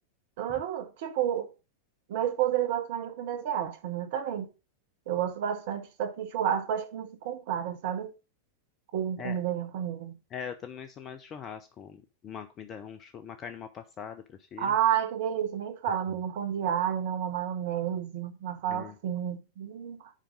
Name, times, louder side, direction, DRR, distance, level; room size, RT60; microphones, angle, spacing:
voice 1, 0.4-1.5 2.1-4.5 5.1-8.1 8.9-10.1 14.6-20.1, right 10 dB, 50° right, 1.0 m, -30 dB
voice 2, 10.3-14.7 15.9-16.0 18.7-19.0, left 7 dB, 30° left, 0.7 m, -42 dB
7.5 x 5.2 x 5.1 m
figure-of-eight pair, 90°, 0 cm